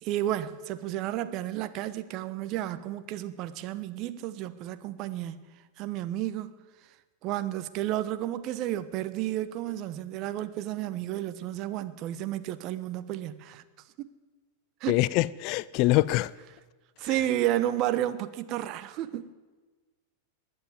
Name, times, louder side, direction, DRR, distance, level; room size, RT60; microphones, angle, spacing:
voice 1, 0.0-5.5 5.8-6.5 7.2-13.6 14.0-14.1 14.8-15.0 17.0-19.3, right 13 dB, 45° right, 0.9 m, -32 dB
voice 2, 14.9-16.3 17.0-17.2, left 18 dB, 50° left, 0.4 m, -25 dB
20.5 x 7.6 x 9.2 m
figure-of-eight pair, 95°, 0 cm